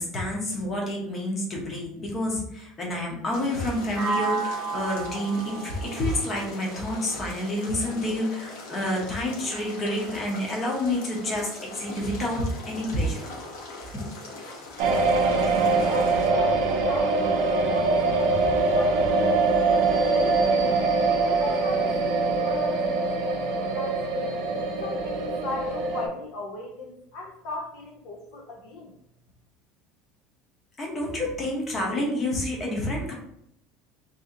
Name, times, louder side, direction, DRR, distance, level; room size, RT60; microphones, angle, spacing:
voice 1, 0.0-13.3 13.9-14.0 18.3-18.5 30.8-33.1, left 1 dB, 20° left, -2 dB, 0.8 m, -29 dB
sound 1, 3.3-16.3, left 2 dB, 70° left, 1.0 m, -41 dB
sound 2, 4.0-7.8, right 5 dB, 15° right, 0.7 m, -33 dB
voice 2, 14.8-20.8 21.3-24.3 24.8-29.0, left 2 dB, 55° left, 0 dB, 0.5 m, -39 dB
sound 3, 14.8-26.1, right 3 dB, 55° right, 0.5 m, -23 dB
2.8 x 2.7 x 3.6 m, 0.74 s
cardioid pair, 175°, 0 cm